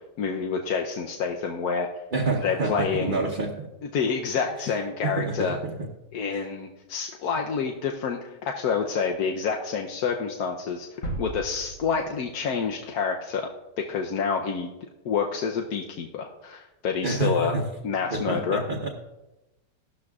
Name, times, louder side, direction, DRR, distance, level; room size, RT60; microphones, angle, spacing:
voice 1, 0.2-1.9 2.4-3.2 3.9-5.6 6.1-10.9 11.2-13.5 13.8-14.7 15.0-17.5 17.8-18.7, left 6 dB, 65° left, 2 dB, 1.2 m, -28 dB
voice 2, 2.1-3.7 4.6-4.7 5.0-5.8 6.3-6.4 17.0-17.6 18.1-18.9, right 3 dB, 35° right, -1 dB, 0.9 m, -28 dB
sound 1, 11.0-13.0 13.3-13.5, right 2 dB, 85° left, 2.5 m, -37 dB
15.5 x 12.5 x 2.4 m, 1.0 s
omnidirectional pair, 2.0 m